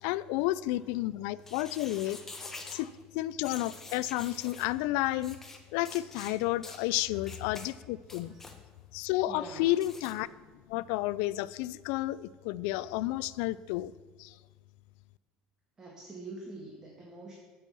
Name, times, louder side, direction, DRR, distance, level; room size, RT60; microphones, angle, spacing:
voice 1, 0.0-5.4 5.7-8.3 8.9-10.3 10.7-13.9 14.2-14.4, left 16 dB, 85° left, 19 dB, 0.3 m, -31 dB
sound 1, 1.4-2.8 3.4-4.7 5.2-5.6 5.8-6.3 6.6-6.8 7.2-7.7 8.0-8.6 9.8-10.1, left 3 dB, 15° left, 1.1 m, -46 dB
voice 2, 6.8-7.3 8.1-8.4 9.3-9.7 15.8-17.3, right 2 dB, 25° right, -2 dB, 1.7 m, -45 dB
8.2 x 6.3 x 7.0 m, 1.4 s
cardioid pair, 135°, 3 cm